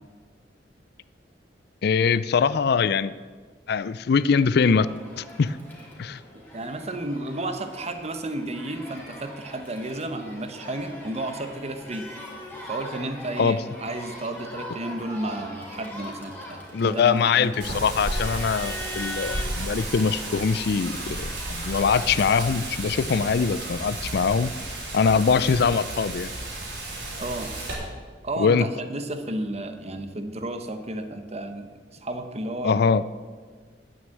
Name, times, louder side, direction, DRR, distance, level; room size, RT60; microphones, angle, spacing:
voice 1, 1.8-3.1 3.7-4.9 5.2-5.6 6.0-6.2 13.4-13.6 16.7-24.5 24.9-26.3 28.4-28.7 32.6-33.0, left 5 dB, 65° left, 16 dB, 0.4 m, -22 dB
Crowd, 4.7-21.8, left 1 dB, 10° left, 2.6 m, -41 dB
voice 2, 6.5-12.1 12.6-17.7 27.2-27.5 28.2-31.7 32.0-32.8, right 1 dB, 35° right, 8 dB, 1.1 m, -32 dB
Wind, 17.6-27.7, right 2 dB, 75° right, 4.5 m, -33 dB
9.5 x 9.5 x 7.8 m, 1.5 s
head